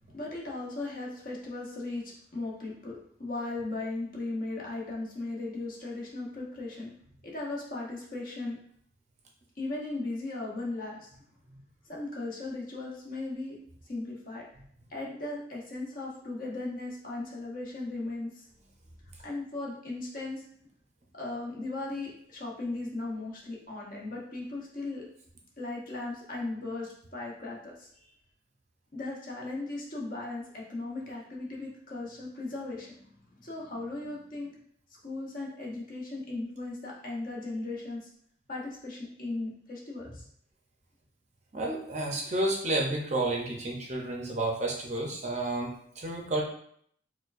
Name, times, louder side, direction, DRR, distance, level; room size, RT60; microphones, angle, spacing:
voice 1, 0.1-6.9 7.2-8.6 9.6-11.1 11.9-13.6 13.9-14.5 14.9-18.5 19.2-20.4 21.1-25.1 25.6-28.1 28.9-34.6 35.0-38.1 38.5-40.3, left 2 dB, 45° left, -3 dB, 0.8 m, -37 dB
voice 2, 41.5-46.4, right 2 dB, 35° right, -1 dB, 0.5 m, -31 dB
4.4 x 2.2 x 2.5 m, 0.65 s
head